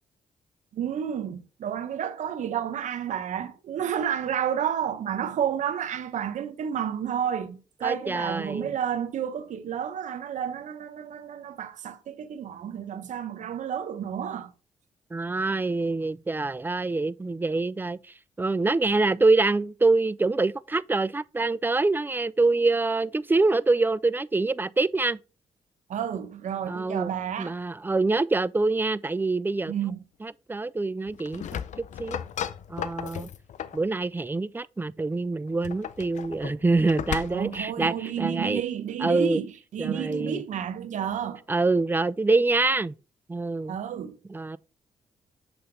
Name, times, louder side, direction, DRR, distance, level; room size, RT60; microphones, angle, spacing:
voice 1, 0.7-14.5 25.9-27.5 29.7-30.0 37.3-41.4 43.7-44.2, right 9 dB, 70° right, 0.8 m, -31 dB
voice 2, 7.8-8.7 15.1-18.0 18.4-25.2 26.7-29.7 30.2-31.6 32.0-32.2 32.7-33.3 33.7-38.6 39.0-39.4 39.8-40.4 41.5-42.9 43.3-43.8 44.3-44.6, right 3 dB, 15° right, 0.3 m, -25 dB
sound 1, 31.1-33.9 35.5-37.7, left 9 dB, 65° left, 0.5 m, -35 dB
7.8 x 3.5 x 3.9 m
supercardioid pair, 60°, 13 cm